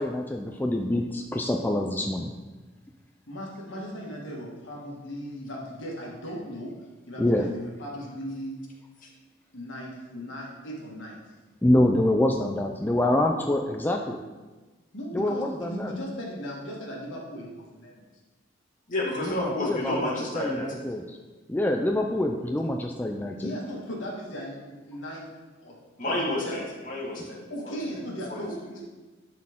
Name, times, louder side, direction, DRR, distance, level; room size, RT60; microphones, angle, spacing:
voice 1, 0.0-2.3 7.2-7.5 11.6-14.2 15.1-15.9 19.2-21.2 21.5-23.5, left 1 dB, 10° left, 2 dB, 0.4 m, -26 dB
voice 2, 3.3-6.7 7.1-8.6 9.5-11.2 14.9-18.1 23.4-25.3 25.6-25.7 26.1-26.7 27.5-28.8, equal, 70° left, -2 dB, 1.8 m, -37 dB
voice 3, 18.9-20.9 26.0-27.7 28.3-28.5, left 1 dB, 45° left, -4 dB, 2.0 m, -30 dB
12.0 x 4.1 x 3.6 m, 1.3 s
head